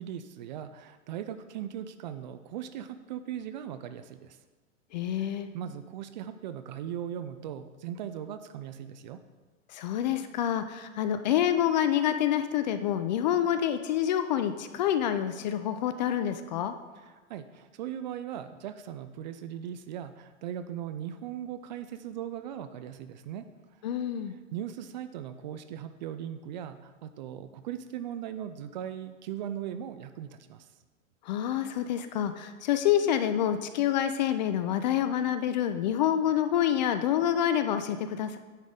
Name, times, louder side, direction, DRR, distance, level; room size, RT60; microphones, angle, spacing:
voice 1, 0.0-4.4 5.2-9.2 17.0-23.5 24.3-30.7, right 10 dB, 35° right, 10 dB, 0.4 m, -39 dB
voice 2, 4.9-5.5 9.7-16.7 23.8-24.4 31.2-38.4, left 10 dB, 35° left, 10 dB, 0.4 m, -27 dB
9.6 x 4.0 x 5.0 m, 1.3 s
hypercardioid pair, 110°, 40 cm